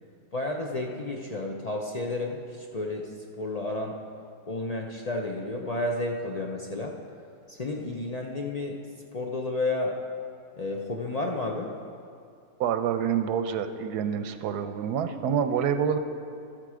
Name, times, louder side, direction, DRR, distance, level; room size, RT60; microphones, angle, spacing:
voice 1, 0.3-4.0 4.5-6.9 7.5-8.8 9.1-10.0 10.6-11.7, left 2 dB, 65° left, 1 dB, 0.3 m, -31 dB
voice 2, 12.6-16.0, right 8 dB, 85° right, 9 dB, 1.2 m, -27 dB
13.0 x 7.6 x 4.9 m, 2.4 s
omnidirectional pair, 1.7 m